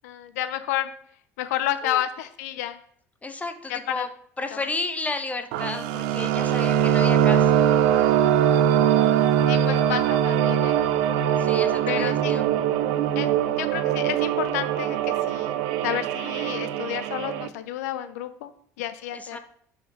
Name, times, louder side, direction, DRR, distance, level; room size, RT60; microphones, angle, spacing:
voice 1, 0.0-0.9 1.4-2.8 3.7-4.0 4.5-4.6 8.9-11.0 11.9-12.3 13.2-13.3 13.6-15.5 15.8-19.4, left 12 dB, 75° left, 11 dB, 0.5 m, -31 dB
voice 2, 3.2-4.1 4.4-7.7 11.4-12.5 19.1-19.4, left 3 dB, 15° left, 7 dB, 1.0 m, -32 dB
sound 1, 5.5-17.5, right 10 dB, 70° right, 0.5 m, -22 dB
5.4 x 4.7 x 4.8 m, 0.63 s
hypercardioid pair, 65°, 8 cm